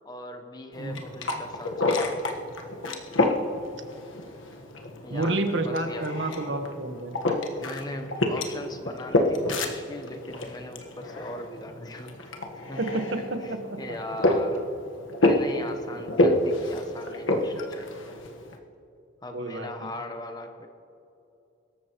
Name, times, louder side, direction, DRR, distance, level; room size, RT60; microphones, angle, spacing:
voice 1, 0.0-2.1 4.9-6.1 7.6-12.3 12.7-13.0 13.4-14.6 15.2-18.2 19.2-20.7, left 1 dB, 20° left, 5 dB, 1.0 m, -39 dB
sound 1, 0.7-18.6, left 1 dB, 80° left, 1.4 m, -29 dB
voice 2, 5.1-7.2 12.8-14.0 15.9-16.1 19.3-19.9, right 2 dB, 65° right, 5 dB, 1.3 m, -30 dB
24.5 x 13.5 x 3.1 m, 2.7 s
head